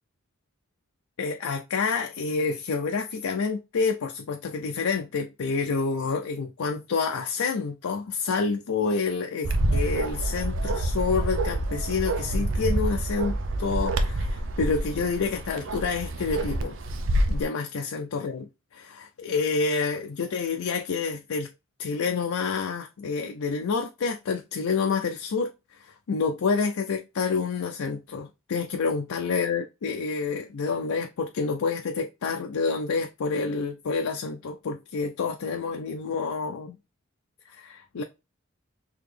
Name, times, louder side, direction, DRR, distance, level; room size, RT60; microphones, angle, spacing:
voice 1, 1.2-16.8 17.3-21.5 21.8-25.5 26.1-36.8 37.5-38.0, left 4 dB, 85° left, 0.5 m, -28 dB
Bark, 9.4-17.4, right 1 dB, 60° right, 0.6 m, -27 dB
3.9 x 2.9 x 3.2 m
head